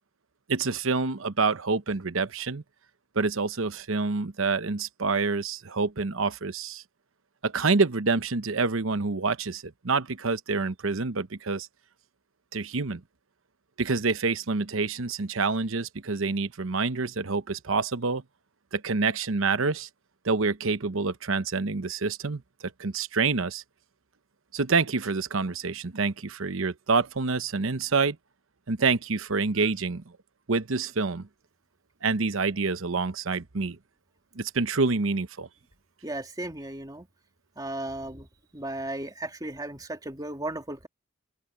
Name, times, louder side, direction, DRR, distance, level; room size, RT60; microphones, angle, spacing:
voice 1, 0.5-2.6 3.1-6.8 7.4-11.7 12.5-13.0 13.8-18.2 18.7-19.9 20.2-22.4 22.8-23.6 24.5-28.2 28.7-30.0 30.5-31.3 32.0-33.8 34.4-35.5, right 4 dB, 65° right, 0.9 m, -27 dB
voice 2, 36.0-37.1 37.6-38.3 38.5-40.9, right 1 dB, 20° right, 2.7 m, -35 dB
open air
head